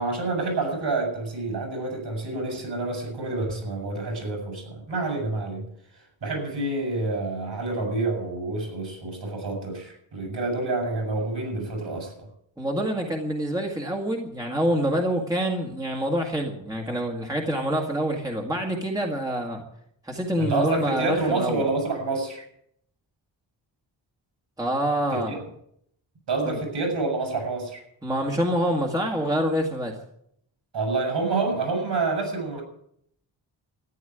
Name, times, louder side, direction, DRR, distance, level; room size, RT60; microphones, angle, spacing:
voice 1, 0.0-12.3 20.4-22.5 25.1-25.4 26.3-27.8 30.7-32.6, right 3 dB, 60° right, 3 dB, 6.8 m, -28 dB
voice 2, 12.6-19.6 20.0-21.6 24.6-25.4 26.5-26.6 28.0-29.9, equal, 10° right, 1 dB, 1.8 m, -26 dB
13.5 x 10.5 x 9.2 m, 0.71 s
wide cardioid pair, 165°, 46 cm